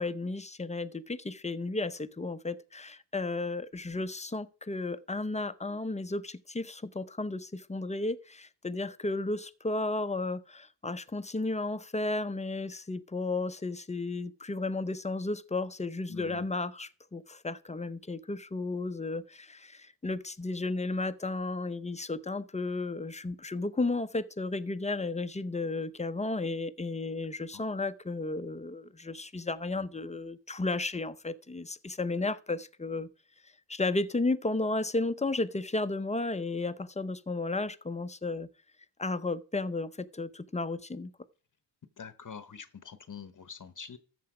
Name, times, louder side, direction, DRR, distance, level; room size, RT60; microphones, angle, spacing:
voice 1, 0.0-33.1 33.7-38.5 39.0-41.1, left 2 dB, 15° left, 0.7 m, -33 dB
voice 2, 16.1-16.5 27.5-27.6 42.0-44.0, left 6 dB, 45° left, 0.9 m, -45 dB
13.5 x 7.4 x 4.9 m
cardioid pair, 75°, 45 cm